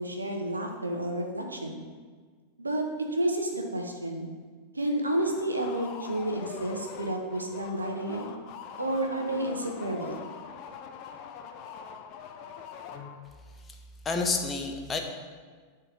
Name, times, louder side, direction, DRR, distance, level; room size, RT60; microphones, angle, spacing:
voice 1, 0.0-1.8 2.6-4.3 4.7-8.3 8.8-10.2, right 1 dB, 80° right, 2 dB, 1.3 m, -30 dB
sound 1, 5.1-13.5, left 7 dB, 40° left, 0.9 m, -44 dB
voice 2, 14.0-15.0, left 4 dB, 20° left, 3 dB, 1.2 m, -29 dB
11.0 x 4.5 x 6.7 m, 1.5 s
figure-of-eight pair, 90°, 0 cm